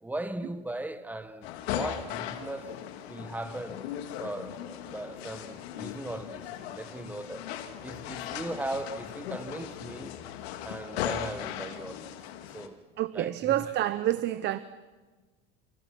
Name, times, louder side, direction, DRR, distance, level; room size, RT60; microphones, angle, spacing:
voice 1, 0.0-2.8 3.1-3.9 4.2-7.5 7.8-10.2 10.6-12.2 12.5-12.8 13.1-13.6, right 1 dB, 5° right, 1.3 m, -38 dB
sound 1, 1.4-12.7, left 10 dB, 85° left, 2.5 m, -38 dB
voice 2, 13.0-14.6, right 13 dB, 35° right, 0.8 m, -28 dB
29.5 x 28.5 x 6.1 m
supercardioid pair, 140°, 30 cm